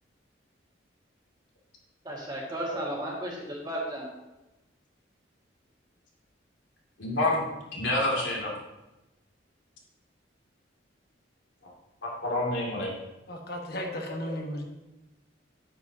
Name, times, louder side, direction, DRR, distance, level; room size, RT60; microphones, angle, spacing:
voice 1, 2.0-4.1, right 1 dB, 25° right, -4 dB, 1.9 m, -34 dB
voice 2, 7.0-7.4 7.7-8.5 12.0-12.9, left 1 dB, 80° left, -2 dB, 2.5 m, -28 dB
voice 3, 13.3-14.6, equal, 55° left, 2 dB, 1.4 m, -35 dB
9.8 x 9.5 x 2.8 m, 1.0 s
head